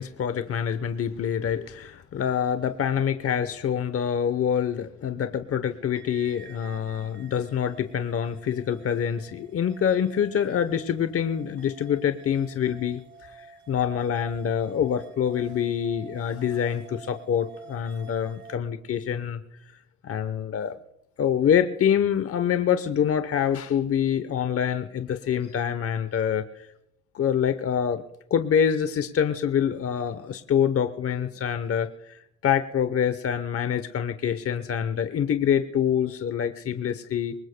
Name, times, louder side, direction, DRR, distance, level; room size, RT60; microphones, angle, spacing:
voice 1, 0.0-13.0 13.4-19.4 20.0-20.8 21.2-26.7 27.1-28.0 28.3-37.4, left 8 dB, 50° left, 10 dB, 0.9 m, -26 dB
sound 1, 6.0-18.6, right 5 dB, 40° right, 2.0 m, -50 dB
24.0 x 20.0 x 2.2 m, 0.82 s
cardioid pair, 90°, 30 cm